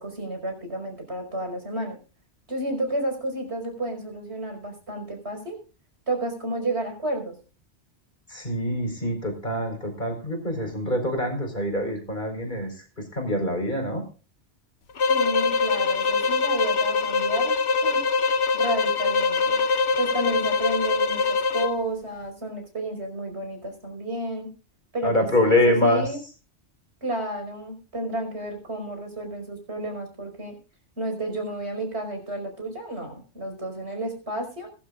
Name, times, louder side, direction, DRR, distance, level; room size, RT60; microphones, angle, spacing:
voice 1, 0.0-2.0 2.5-5.6 6.1-7.3 15.1-17.6 17.8-18.0 18.5-19.6 19.9-24.5 24.9-26.2 27.0-30.6 31.0-34.7, right 1 dB, 65° right, 4 dB, 5.5 m, -31 dB
voice 2, 8.3-14.0 25.0-26.2, left 1 dB, 45° left, 4 dB, 4.9 m, -25 dB
sound 1, 15.0-21.8, left 4 dB, 65° left, 1.3 m, -23 dB
21.5 x 12.0 x 2.4 m, 0.35 s
omnidirectional pair, 1.2 m